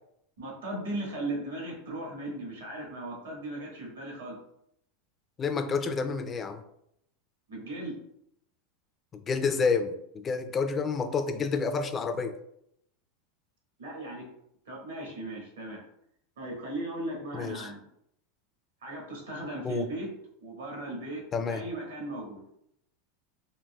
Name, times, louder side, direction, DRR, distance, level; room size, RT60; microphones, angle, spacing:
voice 1, 0.4-4.4 7.5-8.0 13.8-14.3 14.6-15.8 16.4-17.8 18.8-20.1 20.4-22.4, right 1 dB, 90° right, -2 dB, 1.4 m, -37 dB
voice 2, 5.4-6.6 9.1-12.3 17.3-17.7 19.6-19.9 21.3-21.6, left 5 dB, 25° left, 9 dB, 0.4 m, -29 dB
3.9 x 2.8 x 2.3 m, 0.75 s
hypercardioid pair, 110°, 0 cm